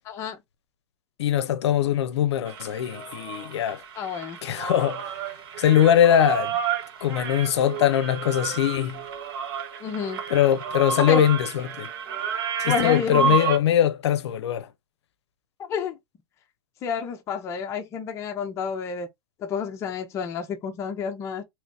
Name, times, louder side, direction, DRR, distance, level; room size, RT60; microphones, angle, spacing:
voice 1, 0.0-0.4 4.0-4.4 9.8-10.2 11.1-11.2 12.6-13.4 15.7-16.0 16.8-19.1 19.4-21.4, left 6 dB, 20° left, 0.6 m, -29 dB
voice 2, 1.2-3.8 4.4-5.2 5.6-6.6 7.0-9.0 10.3-11.9 12.6-14.7, left 10 dB, 80° left, 0.6 m, -22 dB
sound 1, 2.5-13.6, right 7 dB, 55° right, 1.0 m, -31 dB
3.2 x 3.0 x 2.5 m
supercardioid pair, 155°, 14 cm